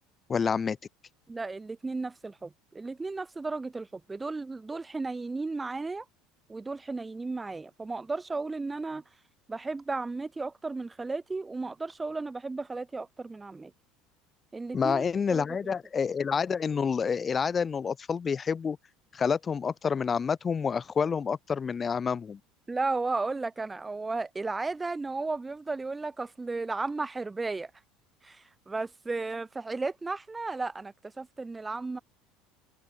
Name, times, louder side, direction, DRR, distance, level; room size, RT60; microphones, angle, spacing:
voice 1, 0.3-0.8 14.7-18.8 19.1-22.4, left 6 dB, 30° left, 2.0 m, -28 dB
voice 2, 1.3-6.1 6.5-9.0 9.5-13.7 14.5-15.7 22.7-27.7 28.2-32.0, right 3 dB, 15° right, 2.9 m, -34 dB
supercardioid pair, 90°, 0 cm